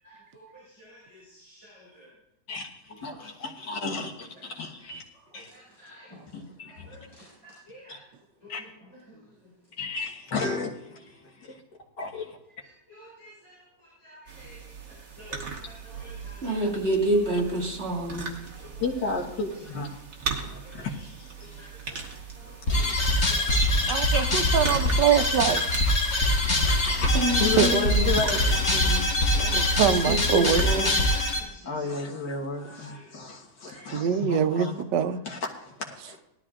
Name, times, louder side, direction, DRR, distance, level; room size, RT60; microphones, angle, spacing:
voice 1, 0.0-2.1 2.9-3.2 5.1-6.2 6.6-8.0 8.4-9.5 12.9-16.7 17.1-17.2 17.6-17.7 18.1-18.8 19.6-19.7 20.3-20.9 21.4-22.9 23.3-23.5 26.6-26.8 29.2-29.9 31.0-32.1 32.5-33.1 33.7-34.1 34.6-34.7, equal, 15° left, -9 dB, 5.3 m, -51 dB
voice 2, 3.0-5.0 5.3-5.5 6.3-6.9 7.9-8.0 8.5-8.6 9.8-11.6 12.0-12.4 18.8-19.9 20.5-21.7 22.7-23.0 23.5-24.7 25.6-25.7 26.7-27.1 27.4-28.6 31.6-34.8 35.3-36.2, left 3 dB, 75° left, -1 dB, 2.1 m, -33 dB
sound 1, 14.3-31.5, right 5 dB, 50° right, 1.7 m, -39 dB
voice 3, 16.4-18.3 26.9-28.1 28.5-29.1 29.8-30.9, right 1 dB, 35° right, -3 dB, 2.2 m, -27 dB
sound 2, 22.7-31.4, left 1 dB, 40° left, 1.7 m, -23 dB
voice 4, 23.9-25.6 27.6-27.7 29.4-30.9 33.9-35.2, right 9 dB, 75° right, 8 dB, 1.3 m, -24 dB
18.5 x 12.5 x 2.5 m, 0.86 s
omnidirectional pair, 1.9 m